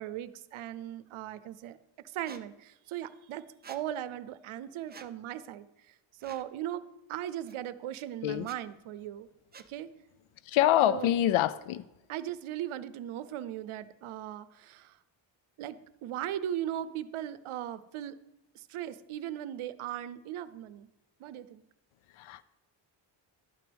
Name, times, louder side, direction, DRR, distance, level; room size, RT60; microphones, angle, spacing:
voice 1, 0.0-1.8 2.0-5.7 6.2-9.3 9.7-9.9 10.9-11.1 12.1-15.0 15.6-18.2 18.5-20.9 21.2-21.6, right 11 dB, 80° right, 14 dB, 0.7 m, -38 dB
Squeak, 2.3-2.4 3.6-3.8 4.9-5.1 6.2-6.5 7.5-7.6 8.4-8.6 9.5-9.7, right 6 dB, 20° right, 0.4 m, -49 dB
voice 2, 10.5-11.9 22.2-22.4, left 12 dB, 80° left, 16 dB, 0.5 m, -26 dB
12.0 x 9.3 x 3.4 m, 0.97 s
wide cardioid pair, 135°, 48 cm